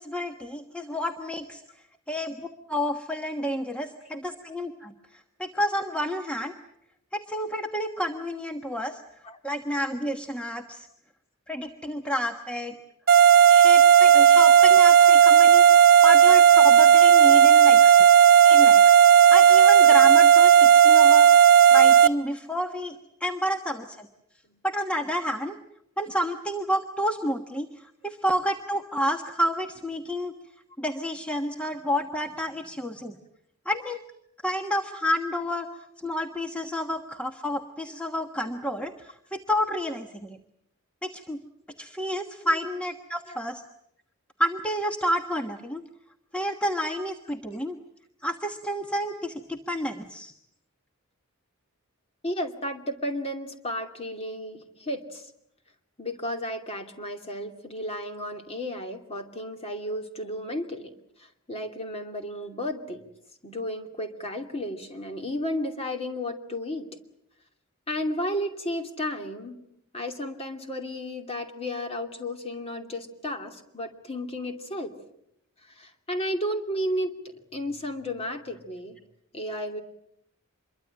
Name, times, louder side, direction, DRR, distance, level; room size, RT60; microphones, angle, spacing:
voice 1, 0.0-1.6 2.1-4.9 5.4-6.5 7.1-9.0 9.4-10.9 11.5-12.7 13.5-18.0 18.4-19.0 19.3-24.1 24.6-25.6 26.0-27.7 28.0-30.3 30.8-33.2 33.6-34.0 34.4-35.7 36.0-40.4 41.0-41.4 41.8-43.6 44.4-45.8 46.3-47.8 48.2-50.3, equal, 5° left, 4 dB, 1.2 m, -30 dB
sound 1, 13.1-22.1, right 8 dB, 40° right, 1.3 m, -14 dB
voice 2, 52.2-55.3 56.0-60.9 61.2-63.1 63.4-66.9 67.9-69.6 69.9-75.0 75.7-77.1 77.5-79.0 79.3-79.8, left 1 dB, 25° left, 5 dB, 2.7 m, -33 dB
26.5 x 23.0 x 8.8 m, 0.76 s
head